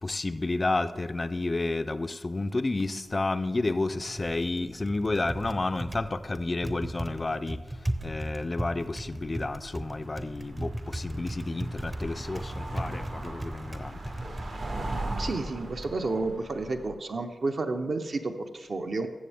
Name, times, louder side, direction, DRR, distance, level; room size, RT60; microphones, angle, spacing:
voice 1, 0.0-14.4, left 2 dB, 25° left, 0.4 m, -31 dB
Typing, 3.5-16.0, right 1 dB, 20° right, 0.6 m, -38 dB
sound 1, 7.9-8.2 8.5-16.9, right 2 dB, 70° right, 1.7 m, -39 dB
voice 2, 15.2-19.1, right 3 dB, 50° right, 0.7 m, -31 dB
14.0 x 7.0 x 3.4 m
wide cardioid pair, 120°, 0 cm